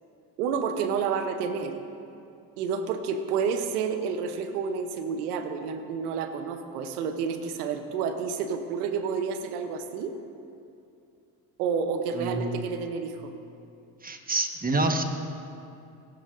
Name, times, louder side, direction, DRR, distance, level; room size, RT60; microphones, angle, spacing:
voice 1, 0.4-1.8 2.6-10.2 11.6-13.3, right 6 dB, 90° right, 8 dB, 0.9 m, -30 dB
voice 2, 12.2-12.6 14.0-15.0, right 2 dB, 20° right, 5 dB, 1.3 m, -27 dB
18.5 x 9.9 x 2.6 m, 2.6 s
hypercardioid pair, 60°, 44 cm